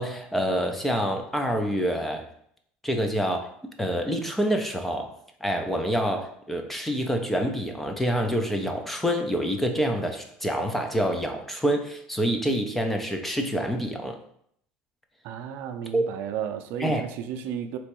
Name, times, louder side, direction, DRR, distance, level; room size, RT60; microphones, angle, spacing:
voice 1, 0.0-2.2 2.8-3.5 3.8-5.1 5.4-14.2 15.9-16.1 16.8-17.0, equal, 5° left, 4 dB, 0.4 m, -27 dB
voice 2, 15.2-17.8, right 9 dB, 55° right, 8 dB, 0.5 m, -33 dB
3.4 x 3.0 x 4.6 m, 0.68 s
cardioid pair, 155°, 4 cm